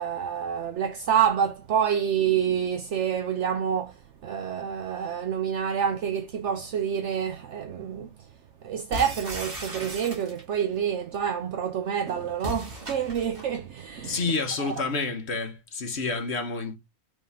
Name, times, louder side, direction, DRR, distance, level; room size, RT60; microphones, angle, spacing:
voice 1, 0.0-4.0 4.2-8.1 8.6-14.2 14.6-14.7, right 8 dB, 65° right, 1.0 m, -27 dB
sound 1, 8.9-10.6 12.4-13.5, equal, 45° right, 1.9 m, -36 dB
voice 2, 14.0-16.7, left 3 dB, 55° left, 1.5 m, -29 dB
5.3 x 3.7 x 5.4 m
omnidirectional pair, 1.3 m